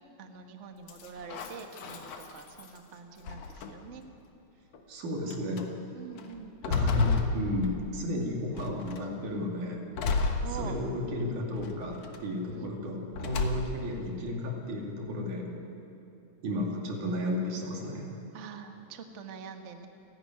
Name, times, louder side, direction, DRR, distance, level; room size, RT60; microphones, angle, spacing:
voice 1, 0.2-4.0 5.9-6.5 7.7-7.8 10.4-10.7 11.3-11.4 12.5-12.8 18.3-19.9, right 6 dB, 50° right, 5 dB, 0.8 m, -45 dB
sound 1, 0.9-2.8 3.2-4.0 4.7-4.8 5.3-5.6 6.2-8.1 8.6-9.1 10.0-11.1 11.6-12.2 13.1-14.0, left 3 dB, 60° left, 2.3 m, -32 dB
voice 2, 4.9-5.7 6.7-9.9 10.5-15.5 16.4-18.1, left 1 dB, 80° right, 0 dB, 4.2 m, -33 dB
29.5 x 11.5 x 9.6 m, 2.8 s
omnidirectional pair, 3.5 m